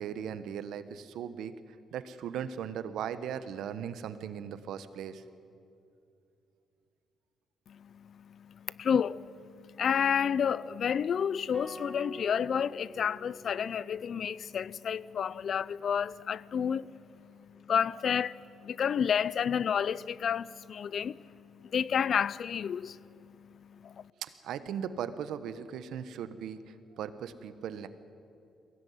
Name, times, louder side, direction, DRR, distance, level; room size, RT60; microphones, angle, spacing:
voice 1, 0.0-1.6 1.9-5.2 24.2-27.9, right 8 dB, 80° right, 1.2 m, -38 dB
voice 2, 7.7-24.1, left 7 dB, 55° left, 0.5 m, -31 dB
sound 1, 11.5-13.9, left 1 dB, 5° left, 5.3 m, -47 dB
22.0 x 17.0 x 9.6 m
cardioid pair, 90°, 0 cm